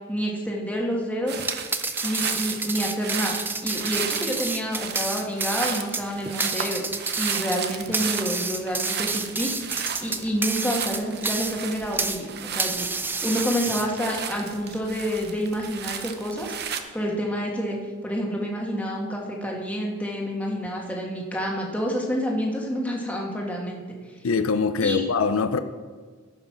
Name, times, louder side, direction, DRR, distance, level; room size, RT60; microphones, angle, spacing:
voice 1, 0.1-1.4 2.0-3.4 3.6-6.9 7.2-12.9 13.2-16.5 16.9-17.8 18.0-23.8 24.8-25.0, equal, 5° left, -1 dB, 1.5 m, -28 dB
sound 1, 1.3-16.8, right 8 dB, 50° right, 0.7 m, -34 dB
sound 2, 1.4-12.3 12.6-14.2, right 3 dB, 10° right, 0.4 m, -29 dB
voice 2, 24.2-25.6, left 5 dB, 80° left, 10 dB, 0.5 m, -23 dB
14.0 x 5.6 x 5.9 m, 1.5 s
head